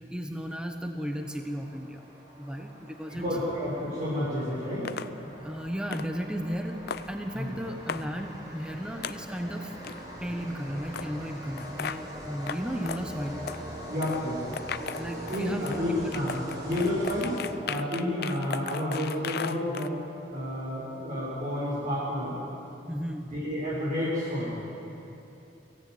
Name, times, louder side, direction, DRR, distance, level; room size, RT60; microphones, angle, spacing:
voice 1, 0.1-2.0 2.4-3.2 5.4-6.8 7.1-9.7 10.2-13.4 15.0-15.7 16.0-16.5 22.9-23.2, equal, 5° right, 3 dB, 1.2 m, -34 dB
sound 1, 1.1-17.9, equal, 20° right, 4.6 m, -42 dB
voice 2, 3.1-4.9 7.3-7.5 13.9-14.7 15.3-16.4 16.6-17.3 17.6-19.9 20.3-22.4 23.3-24.6, left 1 dB, 50° right, -9 dB, 6.4 m, -30 dB
sound 2, 4.9-5.1 5.9-6.1 6.9-7.1 7.9-8.0 9.0-9.2 9.8-10.0 10.9-11.1 11.6-12.0 12.5-12.6 12.9-13.0 13.5-13.6 14.0-14.2 14.5-15.8 16.1-19.9, left 6 dB, 60° left, 0.6 m, -36 dB
25.0 x 16.0 x 8.1 m, 3.0 s
head